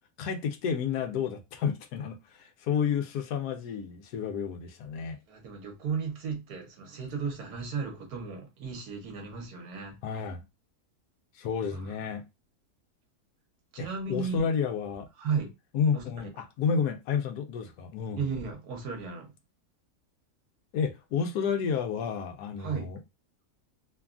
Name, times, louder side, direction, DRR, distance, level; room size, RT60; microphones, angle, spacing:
voice 1, 0.2-5.2 10.0-10.4 11.4-12.2 13.8-15.1 15.7-18.3 20.7-23.0, left 6 dB, 85° left, 1.2 m, -31 dB
voice 2, 5.3-10.0 11.6-11.9 13.7-14.5 15.2-15.5 15.9-16.3 18.2-19.3 22.6-22.9, right 5 dB, 75° right, 1.4 m, -35 dB
3.2 x 2.2 x 2.4 m
omnidirectional pair, 1.7 m